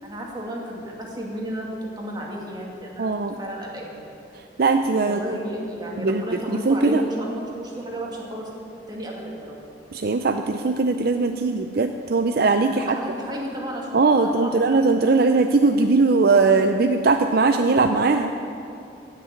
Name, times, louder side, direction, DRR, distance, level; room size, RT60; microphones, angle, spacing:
voice 1, 0.0-1.7 2.0-3.1 3.4-4.0 5.1-8.5 8.9-9.6 12.7-14.8, right 1 dB, 25° right, -2 dB, 2.3 m, -33 dB
voice 2, 3.0-3.3 4.6-5.2 6.0-6.2 6.5-7.0 9.9-13.0 13.9-18.3, right 3 dB, 55° right, 6 dB, 0.5 m, -20 dB
16.0 x 6.7 x 9.6 m, 2.8 s
head